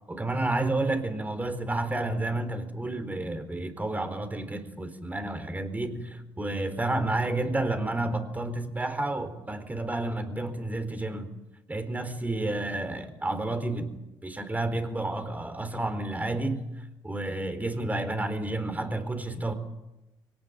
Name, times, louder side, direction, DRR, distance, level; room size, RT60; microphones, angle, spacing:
voice 1, 0.1-11.3 11.7-13.9 14.2-16.6 17.0-19.5, right 2 dB, 15° right, 9 dB, 4.3 m, -30 dB
23.5 x 18.5 x 9.4 m, 0.96 s
supercardioid pair, 65°, 9 cm